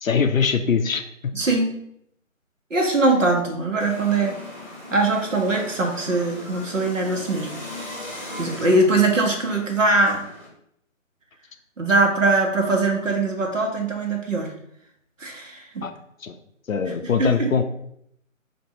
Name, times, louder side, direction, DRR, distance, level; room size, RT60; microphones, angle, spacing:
voice 1, 0.0-1.3 15.8-15.9 16.2-16.4 16.7-17.6, left 6 dB, 75° left, 8 dB, 0.5 m, -22 dB
voice 2, 1.3-1.7 2.7-4.4 4.9-7.5 8.4-10.3 11.8-14.5 15.2-15.8 17.2-17.5, right 2 dB, 65° right, 1 dB, 1.0 m, -21 dB
sound 1, 3.8-10.5, left 1 dB, 10° left, 1.1 m, -38 dB
2.8 x 2.6 x 4.3 m, 0.73 s
figure-of-eight pair, 155°, 41 cm